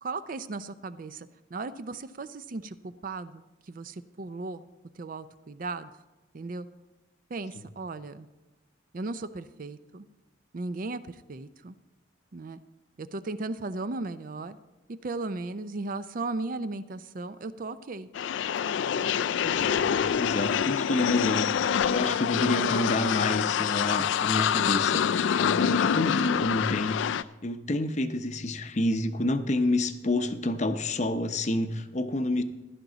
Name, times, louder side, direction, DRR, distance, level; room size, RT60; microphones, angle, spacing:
voice 1, 0.0-4.6 5.0-5.9 6.3-6.7 7.3-8.3 8.9-10.1 10.5-11.7 12.3-12.6 13.0-14.6 15.0-18.1, right 3 dB, 45° right, 13 dB, 0.5 m, -36 dB
sound 1, 18.1-27.2, left 8 dB, 70° left, 0.3 m, -26 dB
voice 2, 19.4-21.5 21.9-25.0 25.3-27.2 27.4-32.4, left 2 dB, 35° left, 10 dB, 0.6 m, -29 dB
15.5 x 11.5 x 4.0 m, 1.1 s
head